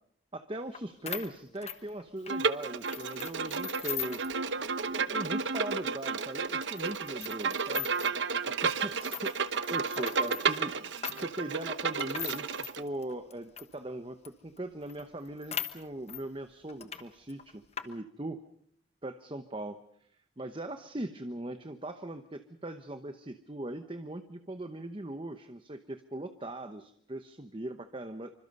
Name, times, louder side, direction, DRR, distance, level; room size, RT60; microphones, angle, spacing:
voice 1, 0.3-4.2 4.9-7.9 8.6-10.9 11.1-18.4 19.0-19.8 20.4-28.3, right 1 dB, 25° right, 8 dB, 0.9 m, -40 dB
sound 1, 0.7-0.8 1.1-2.4 2.9-4.3 4.7-4.8 5.1-5.3 5.8-5.9 6.6-8.2 8.8-13.7 14.2-14.3 14.6-14.7 14.9-16.2 16.7-17.0 17.3-17.9, left 10 dB, 30° left, 1.2 m, -40 dB
Bowed string instrument, 2.3-12.8, right 5 dB, 65° right, 1.0 m, -32 dB
27.0 x 25.0 x 5.4 m, 0.66 s
head